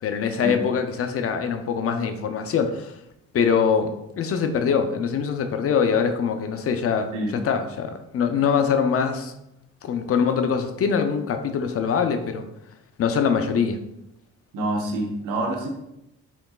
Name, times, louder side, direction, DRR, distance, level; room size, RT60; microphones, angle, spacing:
voice 1, 0.0-3.0 3.3-9.3 9.8-12.5 13.0-13.8, left 6 dB, 50° left, 7 dB, 0.5 m, -23 dB
voice 2, 14.5-15.7, right 1 dB, 85° right, 1 dB, 1.0 m, -27 dB
4.4 x 3.8 x 2.3 m, 0.85 s
cardioid pair, 90°, 30 cm